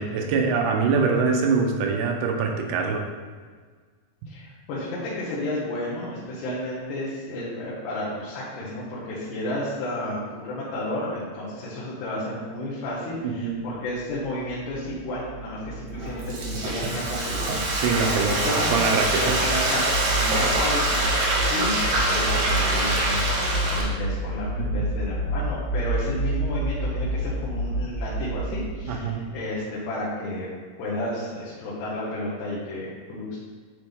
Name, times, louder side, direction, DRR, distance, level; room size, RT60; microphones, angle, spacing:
voice 1, 0.0-3.0 13.4-13.6 17.7-18.4 18.7-19.4 24.6-24.9 28.9-29.3, right 5 dB, 80° right, 3 dB, 2.6 m, -24 dB
voice 2, 4.3-17.6 18.0-18.7 19.2-30.5 30.8-33.4, left 1 dB, 75° left, -8 dB, 3.3 m, -32 dB
sound 1, 13.9-29.2, right 1 dB, 60° left, 1.9 m, -30 dB
Frying (food), 15.9-23.8, right 1 dB, 65° right, 2.1 m, -25 dB
9.7 x 3.9 x 3.5 m, 1.5 s
omnidirectional pair, 4.9 m